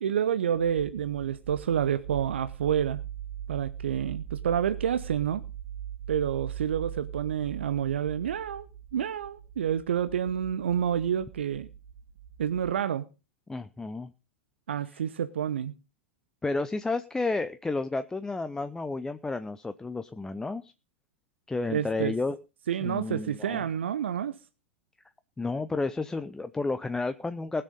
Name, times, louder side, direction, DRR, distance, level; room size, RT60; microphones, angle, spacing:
voice 1, 0.0-3.0 3.5-5.4 6.1-8.7 8.9-11.7 12.4-13.1 14.7-15.7 21.7-22.1 22.7-24.4, right 9 dB, 65° right, 0.8 m, -28 dB
sound 1, 0.5-12.7, right 10 dB, 45° right, 2.2 m, -41 dB
voice 2, 13.5-14.1 16.4-20.7 21.5-22.4 22.8-23.6 25.4-27.6, left 3 dB, 10° left, 0.6 m, -31 dB
20.0 x 6.8 x 5.2 m
figure-of-eight pair, 95°, 7 cm